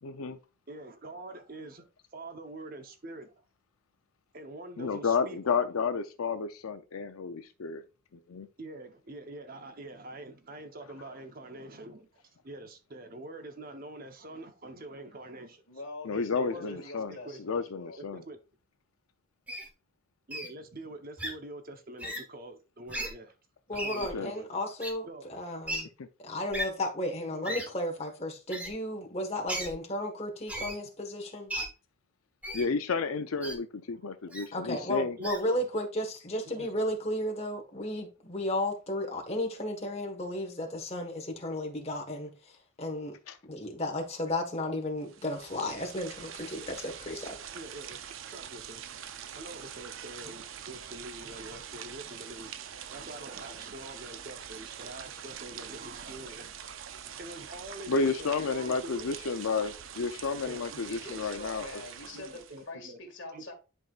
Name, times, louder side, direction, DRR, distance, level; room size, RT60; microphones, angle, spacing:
voice 1, 0.0-0.4 4.8-7.8 8.1-8.5 16.0-17.1 17.4-18.2 24.1-24.3 26.0-26.1 32.5-35.2 43.3-43.4 57.9-61.8, left 5 dB, 80° left, 0.5 m, -31 dB
voice 2, 0.7-1.9 2.1-3.4 4.3-5.4 8.6-15.6 16.4-17.4 18.0-18.4 20.3-23.3 23.7-24.5 24.8-25.3 27.3-27.6 34.2-34.4 34.7-34.9 35.2-35.6 36.4-36.8 46.5-46.7 47.5-48.9 49.3-56.6 57.2-59.1 60.5-60.8 61.1-61.2 62.1-63.0 63.3-63.4, right 2 dB, 40° right, 0.8 m, -45 dB
voice 3, 15.7-18.0 60.8-63.5, left 2 dB, 55° left, 2.0 m, -44 dB
Wild animals, 19.5-19.7 20.3-20.5 21.2-21.3 22.0-22.2 22.9-23.1 23.7-24.1 24.8-24.9 25.7-25.8 26.5-26.7 27.4-27.7 28.5-28.7 29.5-29.7 30.5-30.8 31.5-31.7 32.4-32.7 33.4-33.5 34.3-34.5 35.2-35.4, equal, 5° right, 1.1 m, -35 dB
voice 4, 23.7-25.9 26.2-31.5 34.5-43.1 43.5-47.4, left 1 dB, 30° left, 1.3 m, -34 dB
sound 1, 45.0-62.7, right 9 dB, 65° right, 0.5 m, -44 dB
10.5 x 4.6 x 2.4 m
head